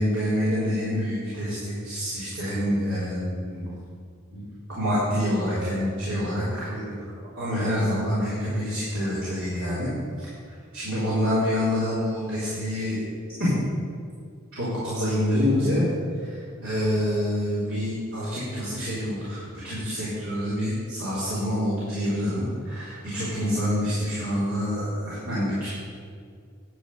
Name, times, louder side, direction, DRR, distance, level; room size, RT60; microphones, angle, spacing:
voice 1, 0.0-3.7 4.3-4.4 4.8-6.9 7.4-9.9 10.2-10.3 10.7-13.0 13.4-13.5 14.5-15.9 16.2-25.7, equal, 75° right, -11 dB, 3.7 m, -27 dB
10.5 x 6.4 x 8.8 m, 2.1 s
head